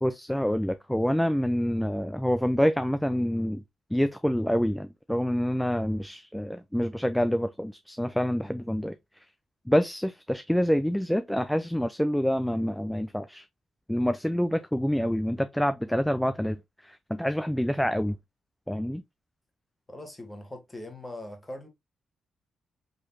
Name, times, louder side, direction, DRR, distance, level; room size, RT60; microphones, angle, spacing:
voice 1, 0.0-3.6 3.9-9.3 9.7-13.4 13.9-18.2 18.7-19.0, equal, 5° left, 0.3 m, -27 dB
voice 2, 19.9-21.7, left 1 dB, 20° left, 1.4 m, -41 dB
3.8 x 3.0 x 2.7 m
supercardioid pair, 50°, 0 cm